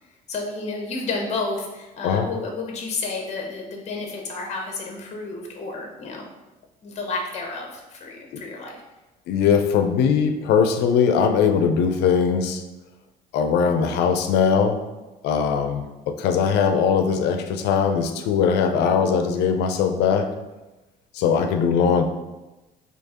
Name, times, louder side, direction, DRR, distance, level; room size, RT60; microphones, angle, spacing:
voice 1, 0.3-6.3 6.8-8.8, left 3 dB, 40° left, 1 dB, 0.7 m, -31 dB
voice 2, 9.3-12.6 13.3-14.8 15.2-20.3 21.1-22.0, left 6 dB, 80° left, 7 dB, 0.4 m, -20 dB
4.4 x 2.8 x 2.9 m, 1.1 s
cardioid pair, 110°, 17 cm